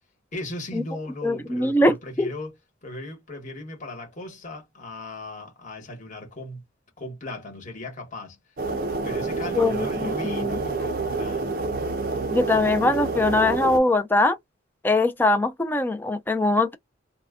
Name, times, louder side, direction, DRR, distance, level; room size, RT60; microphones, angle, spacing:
voice 1, 0.3-2.5 2.8-6.6 7.0-8.4 9.0-11.5, left 2 dB, 40° left, 1.1 m, -37 dB
voice 2, 1.2-2.3 9.6-10.6 12.3-14.4 14.8-16.8, left 2 dB, 10° left, 0.3 m, -22 dB
sound 1, 8.6-13.8, right 3 dB, 50° right, 0.5 m, -28 dB
2.2 x 2.1 x 3.5 m
head